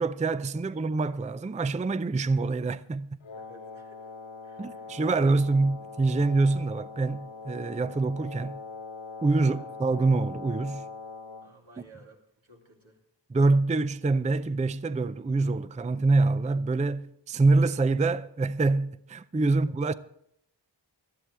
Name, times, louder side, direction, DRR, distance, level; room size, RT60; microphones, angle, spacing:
voice 1, 0.0-3.1 4.6-8.6 9.2-10.9 13.3-19.9, right 3 dB, 15° right, 0.4 m, -25 dB
Wind instrument woodwind instrument, 3.2-11.5, left 4 dB, 70° left, 1.0 m, -42 dB
voice 2, 3.3-4.1 4.4-5.0 9.5-9.7 11.4-13.0 19.5-19.6, right 1 dB, 85° right, 2.8 m, -55 dB
18.5 x 12.5 x 3.4 m
wide cardioid pair, 60°, 46 cm